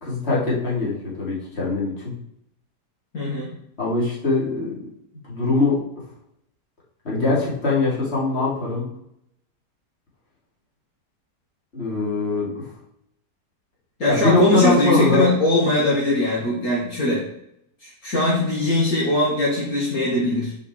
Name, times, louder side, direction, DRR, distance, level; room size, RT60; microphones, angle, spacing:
voice 1, 0.0-2.1 3.8-4.8 5.2-5.8 7.0-8.9 11.7-12.7 14.1-15.2, left 3 dB, 35° left, -5 dB, 3.3 m, -22 dB
voice 2, 3.1-3.5 14.0-17.2 17.8-20.5, left 1 dB, 55° left, -6 dB, 2.8 m, -21 dB
10.0 x 5.5 x 4.7 m, 0.74 s
omnidirectional pair, 1.8 m